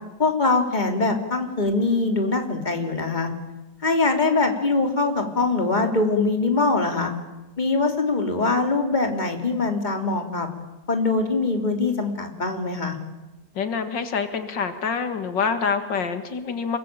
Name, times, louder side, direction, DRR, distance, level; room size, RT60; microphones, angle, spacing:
voice 1, 0.2-3.3 3.8-7.1 7.6-10.5 10.9-13.0, left 3 dB, 25° left, 4 dB, 3.1 m, -23 dB
voice 2, 13.5-16.8, left 5 dB, 90° left, 9 dB, 2.5 m, -26 dB
27.0 x 22.5 x 9.0 m, 1.0 s
omnidirectional pair, 1.9 m